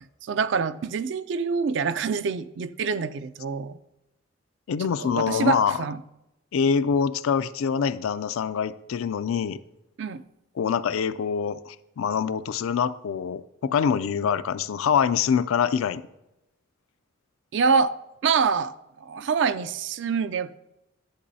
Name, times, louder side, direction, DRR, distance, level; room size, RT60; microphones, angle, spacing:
voice 1, 0.2-3.8 4.8-6.0 10.0-10.2 17.5-17.9 18.2-18.7 19.0-20.5, right 5 dB, 60° right, 0.4 m, -25 dB
voice 2, 4.7-5.8 6.5-9.6 10.6-16.0, left 7 dB, 85° left, 0.4 m, -25 dB
11.5 x 7.6 x 2.7 m
head